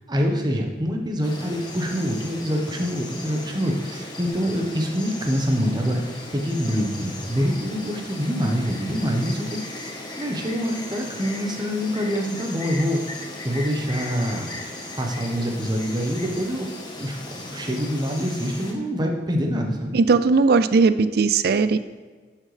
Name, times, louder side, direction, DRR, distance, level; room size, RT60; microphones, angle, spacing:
voice 1, 0.1-9.6 10.2-14.5 15.0-16.7 17.0-19.9, equal, 25° right, 2 dB, 1.1 m, -25 dB
Insect, 1.2-18.7, left 2 dB, 25° left, 1.3 m, -37 dB
voice 2, 19.9-21.8, right 4 dB, 60° right, 13 dB, 0.4 m, -18 dB
12.0 x 6.4 x 3.4 m, 1.4 s
head